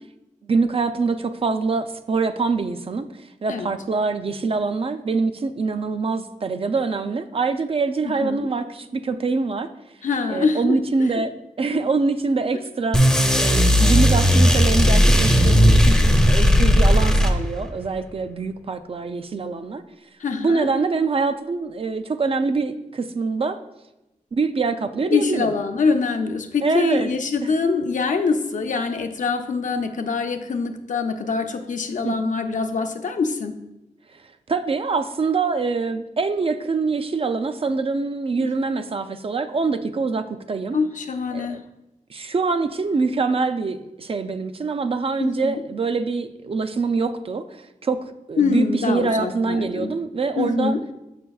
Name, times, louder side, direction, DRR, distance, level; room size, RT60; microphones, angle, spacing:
voice 1, 0.5-3.1 3.4-9.7 10.3-19.8 20.4-23.6 24.3-25.5 26.6-27.1 27.4-27.5 32.0-32.2 34.5-40.8 41.3-41.6 42.1-48.0 48.3-50.8, right 4 dB, 45° right, 9 dB, 0.4 m, -24 dB
voice 2, 8.0-8.5 10.0-10.8 11.7-11.8 20.2-20.7 25.1-33.5 38.4-38.5 40.7-41.6 45.2-45.6 48.4-49.9 50.4-50.8, left 4 dB, 70° left, 6 dB, 0.5 m, -24 dB
sound 1, 12.9-17.7, equal, 5° left, 0.6 m, -16 dB
6.7 x 6.4 x 2.3 m, 0.94 s
wide cardioid pair, 130°, 14 cm